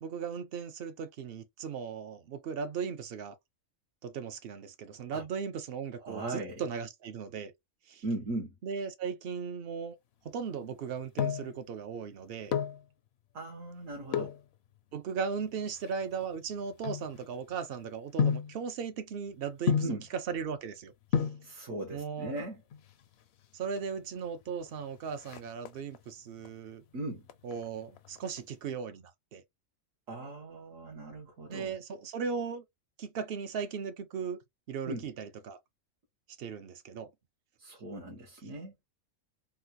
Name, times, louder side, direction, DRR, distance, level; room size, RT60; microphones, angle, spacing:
voice 1, 0.0-3.4 4.0-7.5 7.9-8.0 8.6-10.0 10.2-12.6 14.9-21.2 21.9-22.3 23.5-26.8 27.4-29.4 31.5-32.6 33.0-34.4 34.7-35.6 36.4-37.1, right 6 dB, 60° right, 0.7 m, -37 dB
voice 2, 6.0-6.6 8.0-8.5 13.3-14.3 19.8-20.0 21.4-22.6 26.9-27.3 30.1-31.7 34.8-35.1 37.6-38.8, right 2 dB, 75° right, 1.5 m, -38 dB
sound 1, 10.8-11.6 12.3-12.8 14.1-14.4 15.2-17.6 18.2-18.6 19.7-20.1 20.8-20.9 21.1-21.5 22.6-23.1 23.4-23.5 23.7-23.9 24.3-24.7 25.0-26.0 26.4-26.9 27.2-28.4 28.7-28.8, left 7 dB, 65° left, 0.7 m, -32 dB
3.8 x 2.2 x 2.6 m
omnidirectional pair, 1.4 m